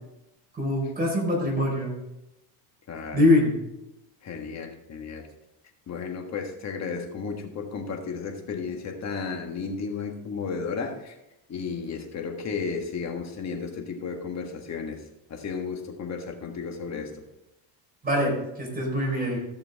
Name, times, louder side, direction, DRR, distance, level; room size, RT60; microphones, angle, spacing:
voice 1, 0.5-1.9 3.1-3.6 18.0-19.4, left 1 dB, 20° right, -2 dB, 4.4 m, -23 dB
voice 2, 2.9-3.3 4.2-5.3 5.9-11.1 11.5-15.0 15.3-17.2, left 5 dB, 35° left, 3 dB, 1.6 m, -33 dB
14.5 x 6.7 x 3.6 m, 0.91 s
cardioid pair, 140°, 46 cm